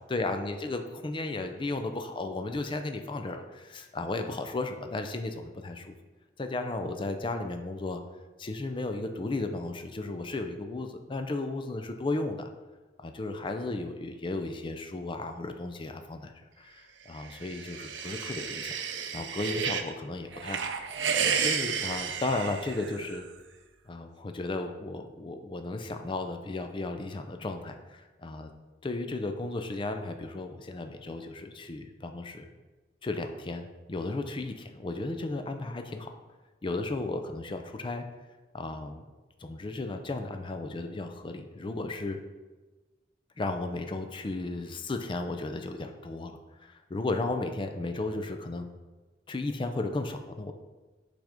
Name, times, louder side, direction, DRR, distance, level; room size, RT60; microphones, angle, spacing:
voice 1, 0.1-5.9 6.4-8.0 8.4-12.5 13.0-18.7 19.1-20.7 21.4-23.3 23.9-28.5 28.8-32.5 33.0-36.2 36.6-38.1 38.5-39.1 39.4-42.2 43.4-48.7 49.3-50.5, left 2 dB, 25° left, 6 dB, 0.4 m, -34 dB
sound 1, 17.2-19.9 20.3-23.2, right 6 dB, 85° right, 0.5 m, -32 dB
6.2 x 3.4 x 5.0 m, 1.2 s
head